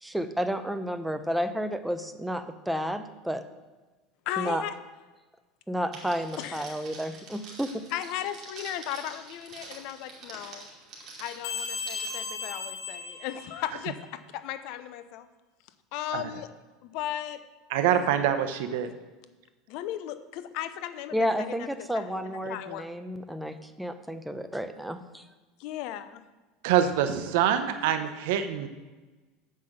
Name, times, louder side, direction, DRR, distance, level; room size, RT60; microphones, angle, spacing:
voice 1, 0.0-3.4 4.4-4.6 5.7-7.8 21.1-25.3, equal, 5° right, 9 dB, 0.6 m, -31 dB
voice 2, 4.3-4.7 6.4-6.8 7.9-10.7 11.2-15.3 15.9-16.5 16.8-17.4 19.7-21.7 21.9-22.9 25.6-26.2, left 11 dB, 60° left, 11 dB, 0.7 m, -36 dB
Crackle, 5.9-12.1, right 3 dB, 40° right, 2.5 m, -46 dB
sound 1, 11.4-14.0, left 5 dB, 85° left, 1.7 m, -36 dB
voice 3, 17.7-18.9 26.6-28.7, right 9 dB, 75° right, 9 dB, 0.8 m, -25 dB
7.4 x 5.7 x 6.6 m, 1.2 s
supercardioid pair, 130°, 0 cm